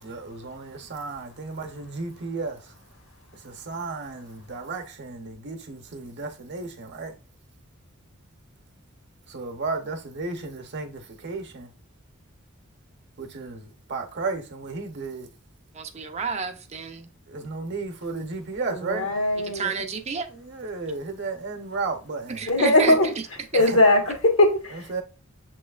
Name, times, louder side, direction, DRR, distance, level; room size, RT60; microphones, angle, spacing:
voice 1, 0.0-2.7 3.3-7.1 9.3-11.7 13.2-15.3 17.3-19.1 20.3-22.4 23.6-23.8 24.7-25.0, right 3 dB, 55° right, 0.8 m, -34 dB
voice 2, 15.7-17.1 19.5-20.3 22.4-23.1 23.5-23.6, right 5 dB, 30° right, 0.5 m, -30 dB
voice 3, 18.9-19.7 22.5-23.1 23.5-24.8, left 1 dB, 70° left, 1.3 m, -20 dB
7.2 x 3.0 x 2.4 m
head